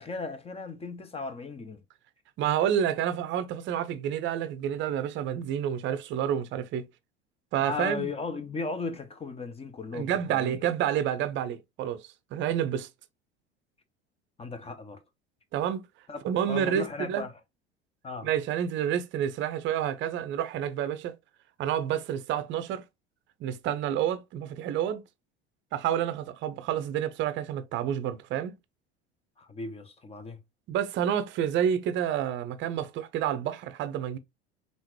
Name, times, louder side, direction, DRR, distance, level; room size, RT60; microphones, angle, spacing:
voice 1, 0.0-1.8 7.6-10.6 14.4-15.0 16.1-16.2 16.5-17.3 18.0-18.3 29.4-30.4, left 4 dB, 15° left, 0.9 m, -36 dB
voice 2, 2.4-6.9 7.5-8.1 9.9-12.9 15.5-15.8 16.2-17.2 18.2-21.1 21.6-22.8 23.4-25.0 25.7-28.5 30.7-34.2, right 10 dB, 35° right, 0.7 m, -29 dB
5.6 x 2.6 x 3.0 m
figure-of-eight pair, 70°, 33 cm